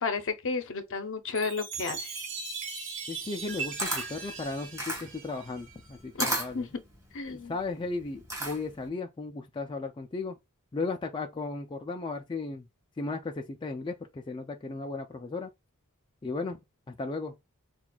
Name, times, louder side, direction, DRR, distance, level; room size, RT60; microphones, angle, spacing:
voice 1, 0.0-2.2 6.2-6.7 7.1-7.5, left 4 dB, 60° left, 0.7 m, -32 dB
Chime, 1.3-6.0, right 5 dB, 55° right, 0.9 m, -39 dB
voice 2, 3.1-6.7 7.3-10.4 10.7-12.7 13.0-15.5 16.2-16.6 16.9-17.3, left 3 dB, 20° left, 0.3 m, -35 dB
Camera, 3.4-8.9, right 1 dB, 15° right, 1.6 m, -35 dB
5.8 x 2.4 x 2.3 m
head